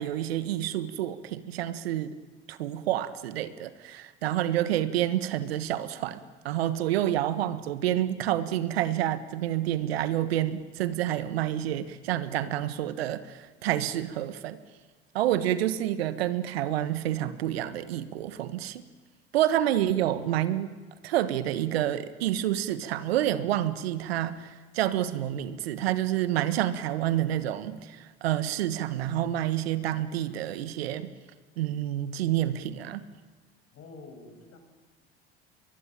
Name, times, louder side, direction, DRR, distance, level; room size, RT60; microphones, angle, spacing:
voice 1, 0.0-2.1 2.5-14.6 15.1-18.8 19.3-20.7 21.0-31.1 31.6-33.0, right 12 dB, 80° right, 14 dB, 1.5 m, -28 dB
voice 2, 33.7-34.6, left 3 dB, 50° left, 5 dB, 7.2 m, -47 dB
23.5 x 22.0 x 9.1 m, 1.4 s
hypercardioid pair, 75°, 30 cm